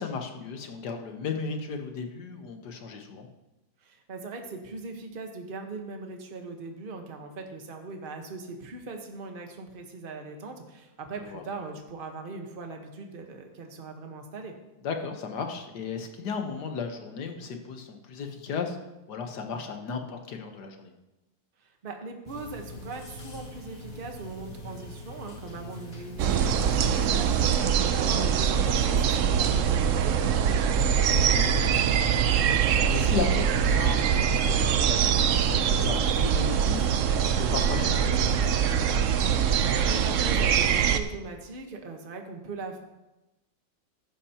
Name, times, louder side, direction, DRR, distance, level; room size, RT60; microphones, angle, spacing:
voice 1, 0.0-3.3 11.2-11.4 14.8-18.8 19.1-20.9 27.6-28.0 31.1-38.9, left 5 dB, 65° left, 5 dB, 1.6 m, -35 dB
voice 2, 3.8-14.5 21.6-30.8 39.5-42.8, right 3 dB, 35° right, 4 dB, 1.2 m, -40 dB
sound 1, 22.3-27.5, left 1 dB, 45° left, 2.3 m, -43 dB
sound 2, 26.2-41.0, right 8 dB, 75° right, 0.7 m, -23 dB
14.5 x 11.5 x 2.9 m, 1.0 s
omnidirectional pair, 2.1 m